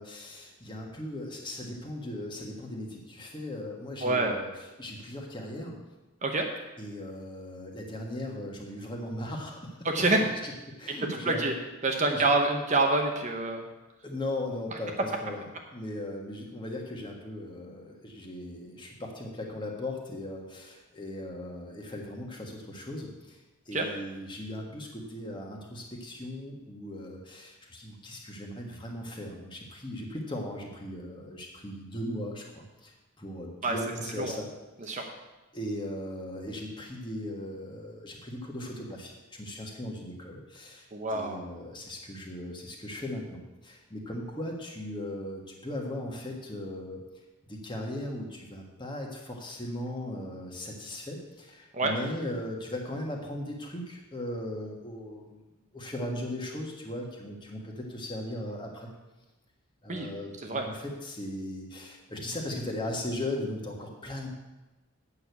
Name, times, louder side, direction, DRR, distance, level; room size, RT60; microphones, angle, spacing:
voice 1, 0.0-5.8 6.8-9.8 10.4-11.5 11.9-12.3 14.0-15.5 15.7-34.5 34.8-35.1 35.5-47.0 47.5-55.4 55.7-58.9 59.8-64.4, left 1 dB, 20° left, 0 dB, 1.5 m, -38 dB
voice 2, 4.0-4.4 6.2-6.5 9.8-10.2 11.3-11.5 11.8-13.6 23.7-23.9 33.6-33.7 34.2-34.4 34.9-35.0 40.9-41.4 51.7-51.9 59.9-60.1 60.4-60.7, right 2 dB, 35° right, 3 dB, 0.9 m, -26 dB
8.6 x 6.5 x 8.2 m, 1.1 s
head